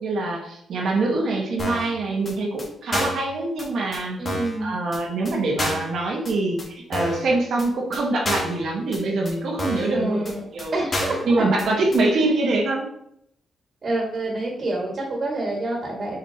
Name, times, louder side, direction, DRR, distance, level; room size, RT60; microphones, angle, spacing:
voice 1, 0.0-4.2 4.6-10.8 11.3-12.9, right 2 dB, 70° right, -1 dB, 1.4 m, -24 dB
sound 1, 1.6-1.9 2.2-2.3 2.6-2.7 2.9-3.2 3.6-3.7 3.9-4.0 4.2-4.6 4.9-5.0 5.2-5.3 5.6-5.9 6.2-6.3 6.6-6.7 6.9-7.2 7.6-7.7 7.9-8.0 8.2-8.6 8.9-9.0 9.2-9.3 9.6-9.9 10.2-10.3 10.6-10.7 10.9-11.2 11.6-11.7 11.9-12.0, left 1 dB, 30° left, 1.8 m, -28 dB
voice 2, 4.2-4.8 9.9-10.4 10.7-11.5 12.2-12.4 13.8-16.2, right 2 dB, 40° right, -2 dB, 1.9 m, -27 dB
6.8 x 4.9 x 2.9 m, 0.73 s
cardioid pair, 125°, 0 cm